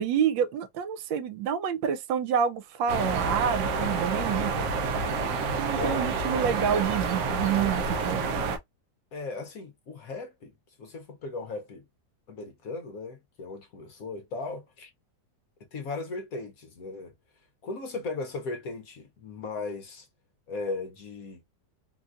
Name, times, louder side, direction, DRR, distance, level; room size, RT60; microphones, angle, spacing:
voice 1, 0.0-4.5 5.6-8.3, right 8 dB, 85° right, 1.3 m, -28 dB
sound 1, 2.9-8.6, right 4 dB, 65° right, 1.0 m, -28 dB
voice 2, 5.8-6.1 9.1-10.5 10.8-11.8 12.3-14.9 15.7-17.1 17.6-20.1 20.5-21.4, left 3 dB, 65° left, 0.9 m, -37 dB
4.0 x 2.3 x 2.4 m
omnidirectional pair, 2.0 m